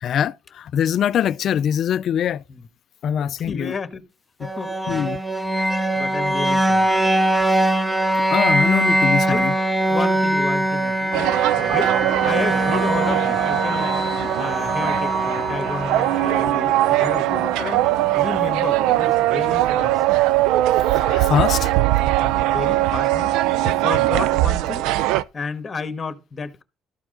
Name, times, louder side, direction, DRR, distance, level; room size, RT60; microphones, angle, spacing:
voice 1, 0.0-2.4 3.0-3.7 4.4-4.5 4.9-5.2 8.3-9.5 14.2-14.3 20.9-21.7, left 9 dB, 55° left, 0.4 m, -23 dB
voice 2, 3.2-4.1 4.6-5.1 5.9-6.9 9.2-9.5 9.9-13.9 14.4-17.8 18.2-20.0 21.9-23.3 23.6-24.9 25.3-26.6, left 4 dB, 25° left, 1.4 m, -31 dB
sound 1, 4.4-18.4, right 1 dB, ahead, 0.9 m, -22 dB
sound 2, 11.1-25.2, right 15 dB, 90° right, 0.4 m, -20 dB
13.0 x 4.8 x 3.8 m
cardioid pair, 115°, 0 cm